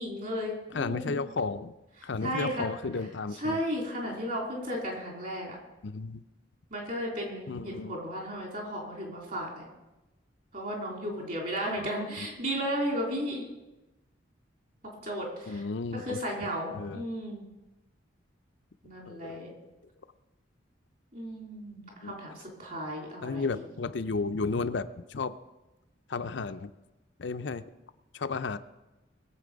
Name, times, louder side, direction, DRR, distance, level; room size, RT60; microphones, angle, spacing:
voice 1, 0.0-1.1 2.2-2.7 3.4-5.6 6.7-9.6 10.5-13.4 15.0-15.6 15.9-17.4 18.8-19.5 21.1-23.6, equal, 45° right, -1 dB, 3.8 m, -34 dB
voice 2, 0.7-1.7 2.0-3.6 5.8-6.2 7.5-8.0 11.8-11.9 12.2-12.3 15.5-17.0 19.1-19.5 22.0-22.1 23.2-25.4 26.1-26.7 27.2-27.6 28.1-28.6, left 4 dB, 65° left, 10 dB, 0.5 m, -33 dB
21.0 x 7.5 x 5.1 m, 1.0 s
head